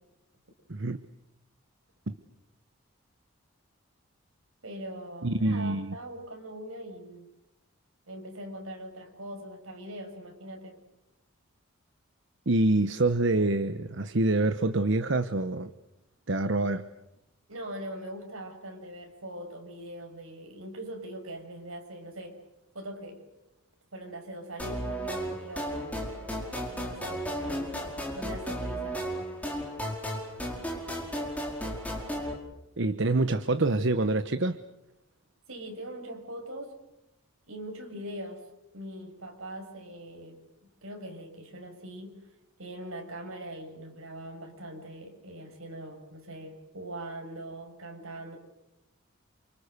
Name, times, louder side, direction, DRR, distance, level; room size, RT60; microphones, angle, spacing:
voice 1, 0.7-1.0 5.2-5.9 12.5-15.7 16.3-16.9 32.8-34.6, right 2 dB, 60° right, 10 dB, 1.0 m, -26 dB
voice 2, 4.6-7.3 8.1-10.8 17.5-22.4 22.7-23.2 23.9-26.2 26.8-29.0 35.5-36.7 37.5-38.5 38.7-42.2 42.6-48.4, right 1 dB, 80° right, 3 dB, 6.9 m, -42 dB
sound 1, 24.6-32.3, equal, 5° left, 5.2 m, -34 dB
29.5 x 28.0 x 6.7 m, 0.88 s
head